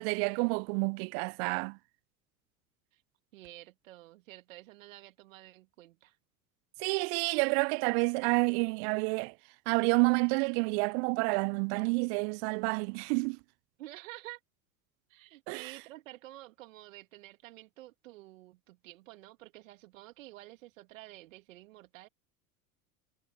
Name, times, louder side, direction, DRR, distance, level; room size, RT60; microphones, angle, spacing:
voice 1, 0.0-1.8 6.8-9.3 9.7-13.4 15.5-15.6, right 35 dB, 50° right, 0.7 m, -29 dB
voice 2, 3.3-6.2 13.8-14.4 15.1-22.1, right 17 dB, 65° right, 2.9 m, -50 dB
figure-of-eight pair, 75°, 43 cm